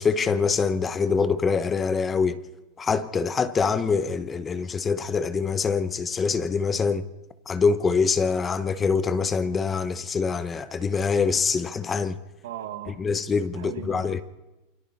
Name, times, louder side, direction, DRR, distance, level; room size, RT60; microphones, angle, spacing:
voice 1, 0.0-2.4 2.8-7.0 7.5-12.2 12.9-14.2, left 5 dB, 20° left, 1.0 m, -24 dB
voice 2, 12.4-13.0 13.5-14.2, right 11 dB, 80° right, 1.8 m, -38 dB
28.5 x 23.0 x 4.2 m
supercardioid pair, 120°, 0 cm